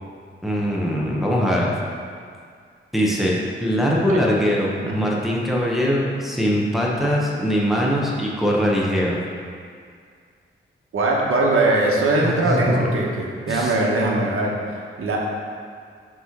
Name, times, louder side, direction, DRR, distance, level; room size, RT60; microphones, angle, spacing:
voice 1, 0.4-1.7 2.9-9.2 12.2-12.9 13.5-13.8, equal, ahead, -4 dB, 0.8 m, -22 dB
voice 2, 10.9-14.6 15.0-15.2, right 2 dB, 85° right, -2 dB, 1.0 m, -21 dB
6.0 x 3.1 x 5.8 m, 2.1 s
wide cardioid pair, 135°, 21 cm